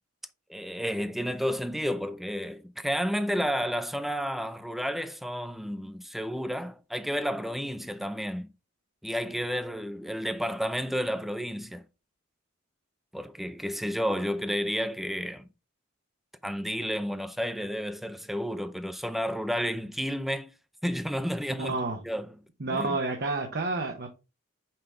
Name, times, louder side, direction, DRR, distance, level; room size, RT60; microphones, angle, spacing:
voice 1, 0.5-8.5 9.0-11.8 13.1-15.5 16.4-20.5 20.8-21.7 22.0-22.3 22.7-23.0, equal, ahead, 0.5 m, -31 dB
voice 2, 21.5-22.0 22.6-24.1, right 3 dB, 50° right, 1.0 m, -30 dB
5.8 x 5.2 x 3.3 m
head